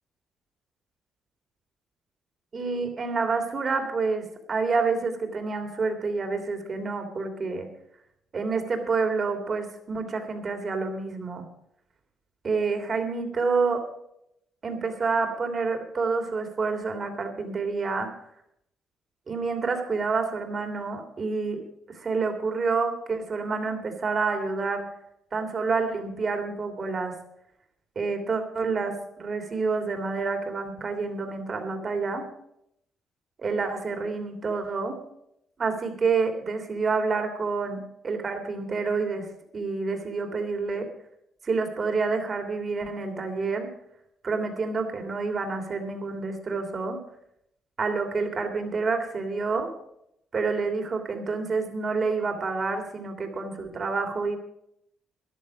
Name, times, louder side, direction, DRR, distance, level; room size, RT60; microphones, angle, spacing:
voice 1, 2.5-7.7 8.3-11.4 12.4-13.8 14.6-18.1 19.3-24.9 25.3-27.1 27.9-32.2 33.4-35.0 35.6-37.8 38.0-39.3 39.5-40.9 41.4-43.7 44.2-47.0 47.8-49.7 50.3-54.4, right 4 dB, 45° right, 5 dB, 3.0 m, -28 dB
13.5 x 11.0 x 5.3 m, 0.75 s
cardioid pair, 90°, 0 cm